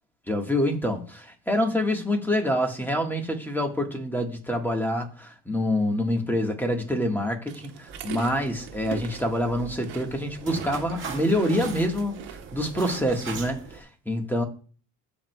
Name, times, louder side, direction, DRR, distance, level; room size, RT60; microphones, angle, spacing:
voice 1, 0.3-14.4, left 1 dB, 5° left, 1.4 m, -26 dB
sound 1, 7.5-13.2, right 8 dB, 75° right, 1.2 m, -42 dB
sound 2, 7.9-13.8, right 4 dB, 30° right, 1.6 m, -40 dB
13.5 x 4.6 x 2.3 m
cardioid pair, 100°, 42 cm